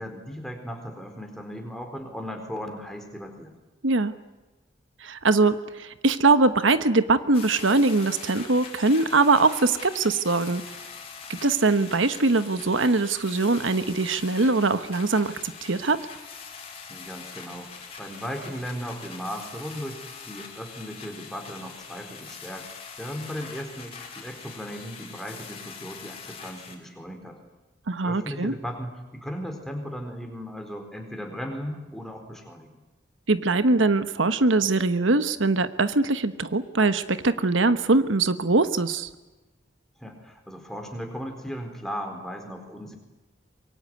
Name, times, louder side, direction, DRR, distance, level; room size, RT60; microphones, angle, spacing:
voice 1, 0.0-3.5 16.9-20.0 20.3-22.7 23.0-27.4 28.0-32.8 40.0-42.9, equal, ahead, 3 dB, 4.3 m, -37 dB
voice 2, 3.8-4.1 5.0-10.6 11.3-16.1 27.9-28.5 33.3-39.1, right 3 dB, 85° right, 11 dB, 1.2 m, -22 dB
sound 1, 7.3-26.7, left 6 dB, 30° left, 4.6 m, -43 dB
24.5 x 23.0 x 9.5 m, 1.1 s
head